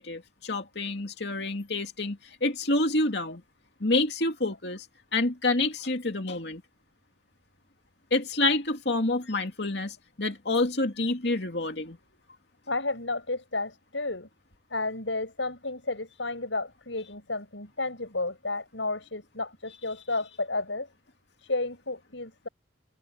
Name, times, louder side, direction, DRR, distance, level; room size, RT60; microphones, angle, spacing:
voice 1, 0.0-3.4 3.8-4.9 5.1-6.6 8.1-12.0, left 2 dB, 60° left, 2.6 m, -28 dB
voice 2, 12.7-14.3 14.7-20.9 21.4-22.5, left 2 dB, 80° left, 7.0 m, -32 dB
open air
head